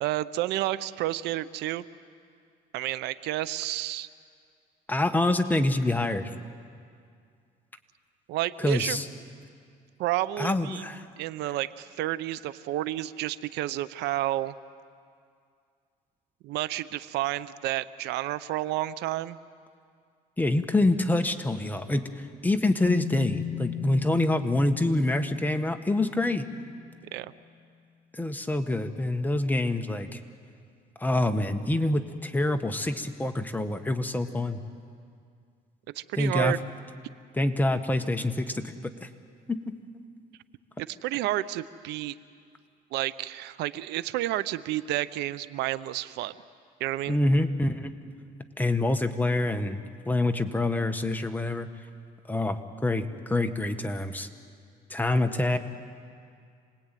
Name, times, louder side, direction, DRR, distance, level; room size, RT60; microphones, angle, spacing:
voice 1, 0.0-1.8 2.7-4.1 8.3-9.0 10.0-10.9 11.2-14.5 16.4-19.4 27.1-27.3 35.9-36.6 40.8-42.2 42.9-46.3 46.8-47.2, right 15 dB, 85° right, 16 dB, 0.7 m, -30 dB
voice 2, 4.9-6.3 8.6-9.1 10.4-11.1 20.4-26.5 28.1-30.2 31.0-34.6 36.1-36.5 37.4-39.1 39.5-39.8 47.1-48.0 48.6-49.8 50.1-51.7 52.3-54.3 54.9-55.6, left 2 dB, 10° left, 6 dB, 1.5 m, -26 dB
sound 1, 22.8-27.1, left 10 dB, 35° left, 1.2 m, -37 dB
27.5 x 20.0 x 9.2 m, 2.2 s
cardioid pair, 110°, 17 cm